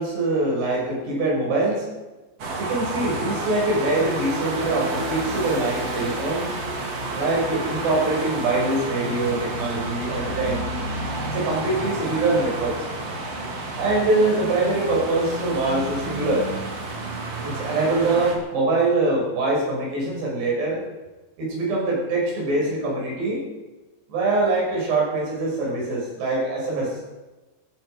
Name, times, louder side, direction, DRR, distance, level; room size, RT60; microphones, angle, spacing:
voice 1, 0.0-1.9 2.6-6.5 7.2-10.7 11.3-12.9 13.8-16.5 17.4-20.8 21.4-23.4 24.1-26.9, right 2 dB, 70° right, -3 dB, 8.1 m, -23 dB
sound 1, 2.4-18.4, right 2 dB, 40° right, 3.0 m, -30 dB
17.0 x 15.0 x 5.3 m, 1.1 s
omnidirectional pair, 5.0 m